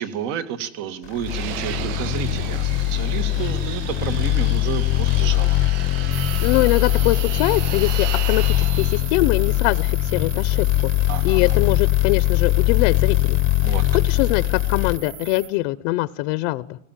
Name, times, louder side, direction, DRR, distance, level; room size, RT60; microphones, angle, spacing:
voice 1, 0.0-5.6 11.1-11.6 13.6-13.8, right 9 dB, 65° right, 10 dB, 2.1 m, -31 dB
sound 1, 1.2-15.0, left 16 dB, 35° left, 0.7 m, -21 dB
Fixed-wing aircraft airplane, 1.3-9.1, right 12 dB, 80° right, 1.3 m, -34 dB
sound 2, 6.1-15.5, right 10 dB, 40° right, 2.7 m, -38 dB
voice 2, 6.4-10.9 11.2-13.4 13.6-13.7 14.0-16.8, left 19 dB, 80° left, 16 dB, 0.8 m, -23 dB
19.0 x 16.0 x 9.0 m, 0.82 s
cardioid pair, 175°, 37 cm